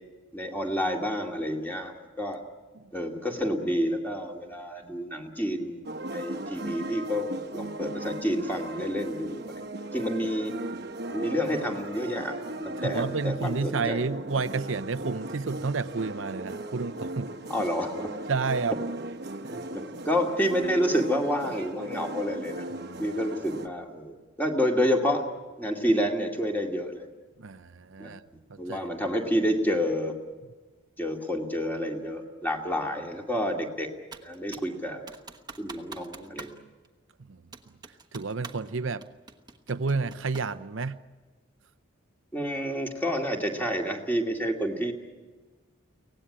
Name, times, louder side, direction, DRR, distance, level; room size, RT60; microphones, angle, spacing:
voice 1, 0.3-1.9 2.2-2.4 2.9-5.8 6.1-7.2 7.5-9.5 9.9-10.5 11.1-14.0 17.5-18.1 19.5-22.6 23.0-25.2 25.6-27.1 28.0-28.1 28.6-30.1 31.0-33.9 34.2-35.0 35.6-36.6 42.3-44.9, equal, 10° left, 2 dB, 2.3 m, -29 dB
sound 1, 5.8-23.7, right 1 dB, 50° right, 1.1 m, -37 dB
voice 2, 12.8-17.3 18.3-18.8 19.4-19.6 22.8-23.2 27.4-28.2 28.5-28.8 37.3-37.4 38.1-39.0 39.7-41.0, right 4 dB, 70° right, 12 dB, 0.7 m, -30 dB
Computer keyboard, 34.1-34.7 35.1-36.6 36.8-36.9 37.5-38.7 39.0-40.6, right 4 dB, 20° right, 1.1 m, -45 dB
24.0 x 18.0 x 9.8 m, 1.3 s
head